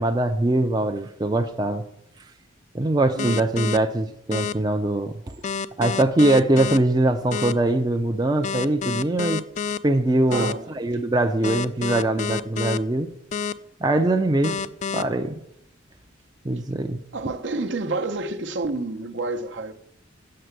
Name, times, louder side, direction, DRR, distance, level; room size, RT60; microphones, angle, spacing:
voice 1, 0.0-1.8 2.7-5.3 5.8-9.4 9.8-13.1 13.8-14.6 14.9-15.4 16.4-17.0, right 2 dB, 20° right, 0.5 m, -22 dB
sound 1, 3.2-3.8 4.3-4.5 5.4-6.8 7.3-7.5 8.4-9.8 10.3-10.5 11.4-12.8 13.3-13.5 14.4-15.0, left 6 dB, 40° left, 0.3 m, -28 dB
voice 2, 10.3-10.7 17.1-19.7, right 3 dB, 65° right, 0.7 m, -29 dB
7.6 x 6.8 x 8.1 m
head